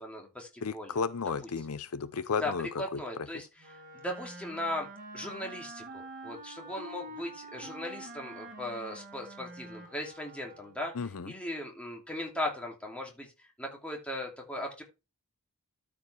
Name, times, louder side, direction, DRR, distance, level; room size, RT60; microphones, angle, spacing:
voice 1, 0.0-1.0 2.4-2.5 2.8-4.9 5.1-10.9 11.2-14.8, left 1 dB, 5° left, 2.7 m, -38 dB
voice 2, 0.6-3.0 11.0-11.3, left 5 dB, 70° left, 0.6 m, -33 dB
Wind instrument woodwind instrument, 3.6-10.9, right 2 dB, 40° right, 2.2 m, -46 dB
13.0 x 5.1 x 3.4 m
head